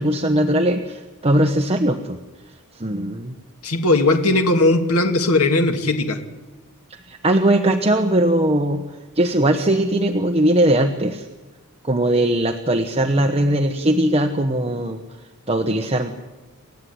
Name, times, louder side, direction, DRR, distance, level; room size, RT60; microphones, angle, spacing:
voice 1, 0.0-2.2 2.7-3.3 6.9-8.8 9.1-11.3 11.8-15.0 15.5-16.1, right 1 dB, 30° right, 4 dB, 1.3 m, -19 dB
voice 2, 3.6-6.2, left 2 dB, 75° left, 5 dB, 2.4 m, -18 dB
29.0 x 14.5 x 9.8 m, 1.2 s
head